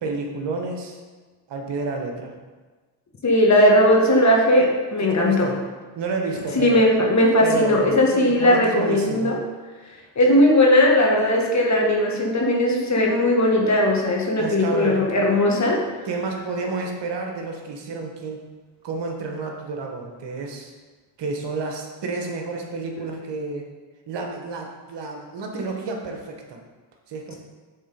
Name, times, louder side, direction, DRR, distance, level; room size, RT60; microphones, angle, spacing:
voice 1, 0.0-1.0 1.5-2.3 5.0-5.6 5.9-6.9 7.4-8.0 8.3-9.3 14.4-15.0 16.0-18.4 18.8-20.7 21.2-23.7 24.1-26.6 27.1-27.3, right 3 dB, 60° right, 1 dB, 1.4 m, -30 dB
voice 2, 3.2-5.5 6.5-9.4 10.1-15.8, left 1 dB, 35° left, -1 dB, 1.7 m, -18 dB
7.6 x 3.9 x 5.3 m, 1.3 s
supercardioid pair, 75°, 48 cm